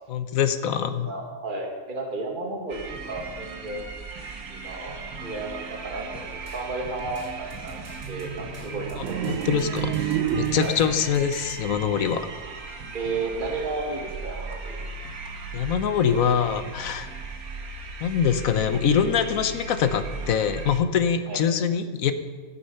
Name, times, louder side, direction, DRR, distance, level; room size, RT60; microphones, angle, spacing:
voice 1, 0.1-1.1 9.3-12.3 15.5-17.1 18.0-22.1, left 7 dB, 75° left, 10 dB, 1.3 m, -24 dB
voice 2, 0.9-3.8 4.5-7.3 7.6-9.4 10.6-10.8 12.9-14.8 21.3-21.4, right 3 dB, 35° right, 0 dB, 2.2 m, -33 dB
sound 1, 2.7-20.8, right 4 dB, 90° right, 1.7 m, -37 dB
sound 2, 6.1-11.6, equal, 50° right, 2.5 m, -46 dB
sound 3, 9.0-11.1, right 10 dB, 65° right, 1.0 m, -28 dB
14.5 x 11.5 x 5.6 m, 1.5 s
omnidirectional pair, 1.5 m